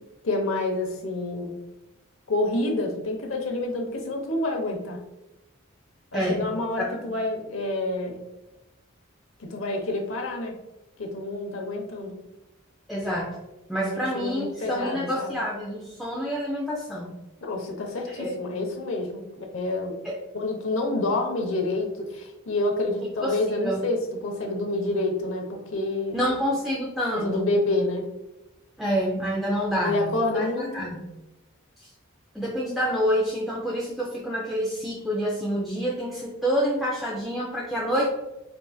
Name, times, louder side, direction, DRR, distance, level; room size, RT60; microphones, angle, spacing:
voice 1, 0.2-1.5 2.3-5.0 6.1-8.2 9.4-10.6 11.0-12.2 13.8-15.4 17.4-19.9 20.3-26.2 27.1-28.1 29.8-30.8, left 2 dB, 70° left, 1 dB, 0.8 m, -28 dB
voice 2, 6.1-6.5 6.8-7.0 12.9-13.4 13.7-17.1 18.1-18.3 20.0-20.1 23.2-23.8 26.1-27.6 28.8-31.1 31.8-31.9 32.3-38.1, equal, ahead, -4 dB, 0.4 m, -28 dB
4.6 x 2.5 x 2.3 m, 0.98 s
head